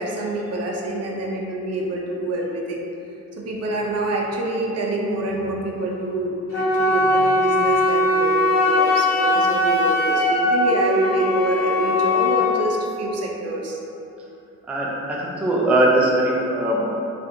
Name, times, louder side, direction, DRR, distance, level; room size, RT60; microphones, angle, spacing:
voice 1, 0.0-2.9 3.3-13.8, right 2 dB, 50° right, -1 dB, 0.6 m, -27 dB
Wind instrument woodwind instrument, 6.5-12.6, left 2 dB, 45° left, 1.2 m, -19 dB
voice 2, 14.7-16.9, right 1 dB, 5° right, -4 dB, 0.4 m, -20 dB
4.1 x 2.5 x 2.6 m, 2.8 s
cardioid pair, 105°, 32 cm